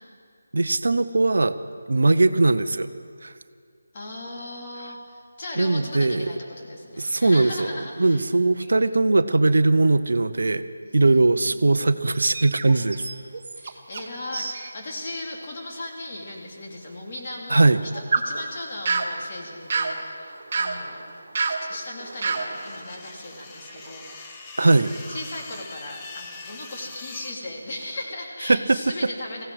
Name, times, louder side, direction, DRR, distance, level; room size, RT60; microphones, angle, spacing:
voice 1, 0.5-1.5 1.9-2.9 3.2-3.3 5.6-6.3 7.0-10.6 10.9-13.1 17.5-17.8 24.6-24.9 28.5-28.8, right 2 dB, 70° right, 12 dB, 0.7 m, -20 dB
voice 2, 3.9-8.2 10.8-11.6 13.6-17.9 18.2-21.1 21.4-24.8 25.1-29.4, left 1 dB, 35° left, -2 dB, 2.9 m, -37 dB
sound 1, 12.1-14.1 14.3-14.7 15.1-15.2 15.9-16.0 17.5-24.2 24.6-26.1 26.7-26.9 27.4-28.1, right 4 dB, 40° right, 1.2 m, -31 dB
sound 2, 22.3-27.3, left 4 dB, 15° left, 1.0 m, -43 dB
18.0 x 16.0 x 4.9 m, 2.2 s
figure-of-eight pair, 160°, 0 cm